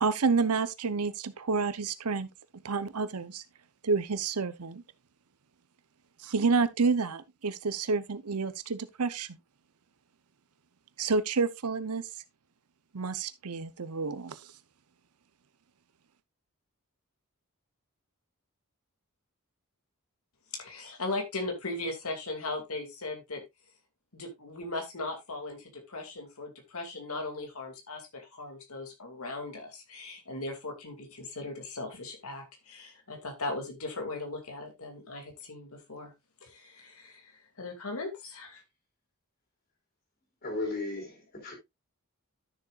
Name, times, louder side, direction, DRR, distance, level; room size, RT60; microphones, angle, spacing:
voice 1, 0.0-2.3 2.6-3.4 3.8-4.8 6.2-9.4 11.0-12.1 12.9-14.4, right 4 dB, 85° right, 0.8 m, -29 dB
voice 2, 20.6-23.4 24.1-36.1 36.4-38.6, left 2 dB, 75° left, 2.5 m, -38 dB
voice 3, 40.4-41.5, left 2 dB, 45° left, 4.7 m, -35 dB
12.5 x 6.9 x 2.4 m
head